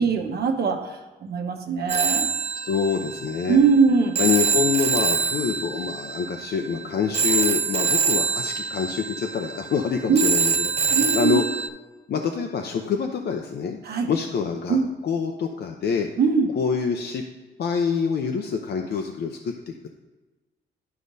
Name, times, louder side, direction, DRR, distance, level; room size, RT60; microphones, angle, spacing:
voice 1, 0.0-2.3 3.5-4.2 10.1-10.2 10.9-11.4 13.8-14.1 14.7-14.9 16.2-16.5, right 5 dB, 55° right, 3 dB, 1.2 m, -21 dB
Telephone, 1.9-11.7, right 6 dB, 30° right, 0.5 m, -25 dB
voice 2, 2.6-3.6 4.2-11.4 12.1-13.8 14.1-14.8 15.0-16.1 16.6-17.2 17.6-19.9, left 6 dB, 55° left, 4 dB, 0.7 m, -26 dB
11.5 x 4.8 x 2.7 m, 1.2 s
cardioid pair, 90°, 20 cm